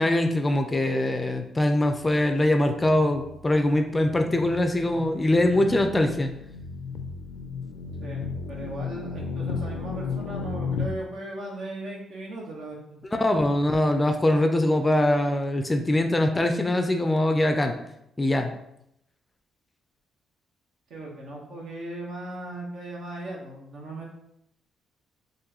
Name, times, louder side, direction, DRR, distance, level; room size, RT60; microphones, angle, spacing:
voice 1, 0.0-6.3 13.2-17.8 18.2-18.5, left 1 dB, 20° left, 6 dB, 0.4 m, -23 dB
sound 1, 1.9-10.9, left 5 dB, 85° left, 0.4 m, -35 dB
voice 2, 8.0-13.0 20.9-24.2, right 1 dB, 70° right, -1 dB, 1.0 m, -37 dB
3.7 x 2.6 x 2.9 m, 0.78 s
cardioid pair, 90°, 0 cm